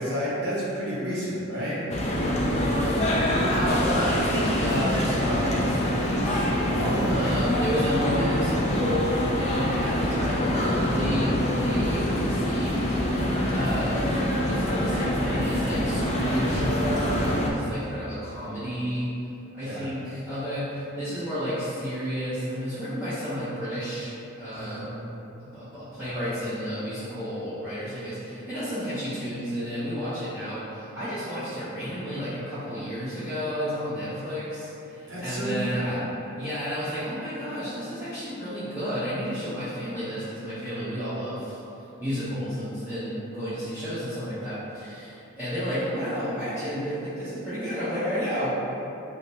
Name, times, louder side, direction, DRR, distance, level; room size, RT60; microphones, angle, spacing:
voice 1, 0.0-1.8 6.7-7.2 19.6-19.9 24.5-24.8 35.1-35.8, equal, 50° right, -8 dB, 1.0 m, -30 dB
sound 1, 1.9-17.5, equal, 30° left, 0.3 m, -25 dB
voice 2, 3.5-6.5 7.1-12.9 13.5-14.2 14.5-19.1 19.5-24.1 24.4-24.9 25.4-36.0 36.4-41.6 42.0-48.6, equal, 10° right, -15 dB, 0.8 m, -31 dB
5.0 x 2.1 x 2.7 m, 2.8 s
head